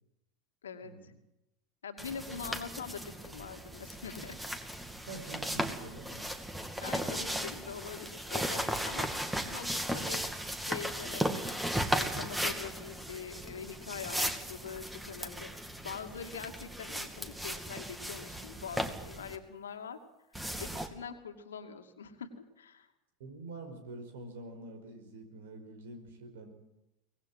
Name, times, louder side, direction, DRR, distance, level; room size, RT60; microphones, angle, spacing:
voice 1, 0.6-1.1 1.8-4.4 6.8-9.1 9.5-10.2 10.6-11.5 11.9-15.5 15.8-20.0 20.6-22.9, left 6 dB, 80° left, 6 dB, 2.4 m, -43 dB
sound 1, 2.0-19.4 20.3-20.9, equal, 5° right, 2.5 m, -36 dB
voice 2, 5.1-6.3 23.2-26.5, right 2 dB, 70° right, 7 dB, 5.2 m, -46 dB
24.0 x 19.0 x 7.7 m, 0.92 s
figure-of-eight pair, 85°, 0 cm